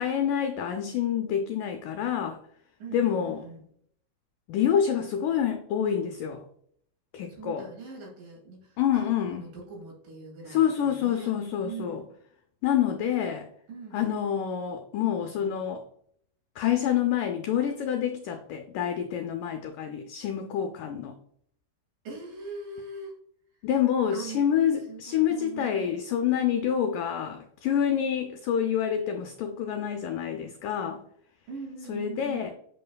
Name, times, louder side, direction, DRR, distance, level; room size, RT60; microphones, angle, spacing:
voice 1, 0.0-2.4 2.9-3.4 4.5-6.4 7.1-7.7 8.8-9.4 10.5-12.0 12.6-13.5 13.9-15.8 16.6-21.2 23.6-31.0 31.9-32.5, left 9 dB, 90° left, 5 dB, 1.8 m, -27 dB
voice 2, 2.8-3.6 7.3-11.3 11.6-12.1 13.7-14.1 22.1-23.1 24.1-24.5 24.9-26.0 31.5-32.5, right 4 dB, 60° right, -2 dB, 3.7 m, -42 dB
8.5 x 5.4 x 2.3 m, 0.66 s
omnidirectional pair, 4.4 m